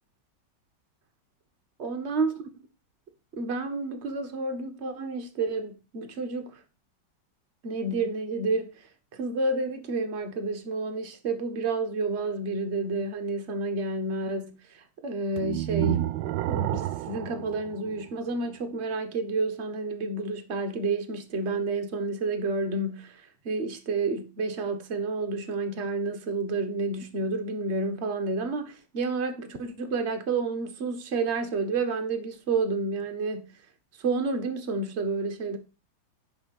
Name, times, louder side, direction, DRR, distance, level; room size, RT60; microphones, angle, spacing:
voice 1, 1.8-2.3 3.4-6.6 7.6-8.9 9.1-16.1 16.5-33.5 34.0-35.6, right 3 dB, 40° right, 1.4 m, -30 dB
sound 1, 15.4-18.5, right 14 dB, 85° right, 1.4 m, -30 dB
10.5 x 3.6 x 6.9 m
omnidirectional pair, 2.1 m